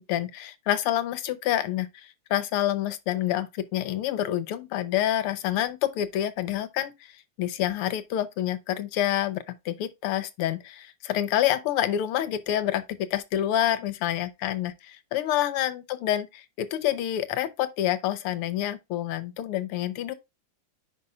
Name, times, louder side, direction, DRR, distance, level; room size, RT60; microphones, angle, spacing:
voice 1, 0.0-12.8 13.1-20.1, left 12 dB, 85° left, 1.7 m, -28 dB
9.3 x 5.5 x 2.3 m
omnidirectional pair, 2.4 m